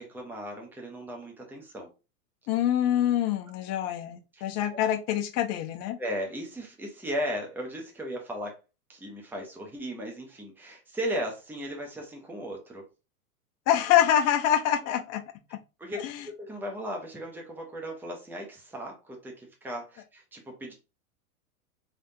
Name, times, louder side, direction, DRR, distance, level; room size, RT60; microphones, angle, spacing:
voice 1, 0.0-1.9 4.3-4.4 4.7-4.8 6.0-8.6 8.9-12.8 14.8-15.0 15.8-20.7, equal, 5° right, 0.9 m, -36 dB
voice 2, 2.5-6.0 13.7-15.2, left 11 dB, 35° left, 0.7 m, -25 dB
3.5 x 3.3 x 2.7 m
hypercardioid pair, 105°, 46 cm